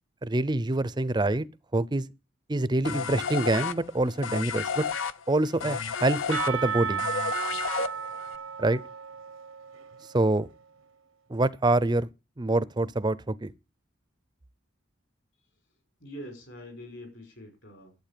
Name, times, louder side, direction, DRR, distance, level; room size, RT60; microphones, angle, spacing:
voice 1, 0.2-1.5 1.7-2.0 2.5-4.8 5.3-7.0 8.6-8.8 10.1-10.5 11.3-12.1 12.4-13.5, right 2 dB, 20° right, 0.6 m, -26 dB
sound 1, 2.8-8.3, left 6 dB, 75° left, 0.8 m, -32 dB
Percussion / Church bell, 6.3-10.3, right 7 dB, 85° right, 1.0 m, -33 dB
voice 2, 16.0-17.9, equal, 60° left, 5.4 m, -44 dB
12.0 x 8.3 x 6.8 m
head